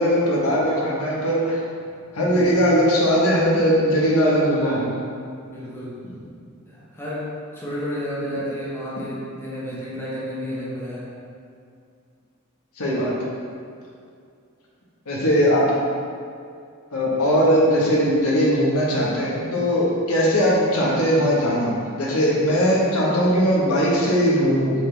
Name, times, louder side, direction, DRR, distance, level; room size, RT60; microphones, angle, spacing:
voice 1, 0.0-1.6 2.1-4.8 12.8-13.1 15.1-15.7 16.9-24.7, equal, 80° left, -5 dB, 1.4 m, -19 dB
voice 2, 2.2-2.6 5.4-6.0 6.7-11.1, equal, 10° left, -8 dB, 1.1 m, -31 dB
7.4 x 4.0 x 3.4 m, 2.3 s
head